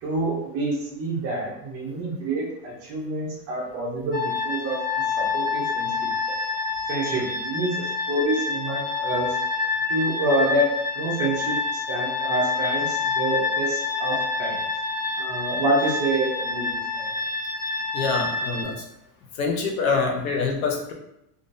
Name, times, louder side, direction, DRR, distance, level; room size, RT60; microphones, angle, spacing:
voice 1, 0.0-4.8 5.2-5.9 6.9-9.3 9.9-10.7 10.9-14.6 15.2-17.1, right 2 dB, 30° right, -3 dB, 0.6 m, -27 dB
sound 1, 4.1-18.6, left 4 dB, 25° left, 0.8 m, -27 dB
voice 2, 17.9-18.7 19.4-20.9, left 4 dB, 55° left, 2 dB, 0.7 m, -25 dB
3.6 x 2.5 x 2.5 m, 0.82 s
supercardioid pair, 165°, 49 cm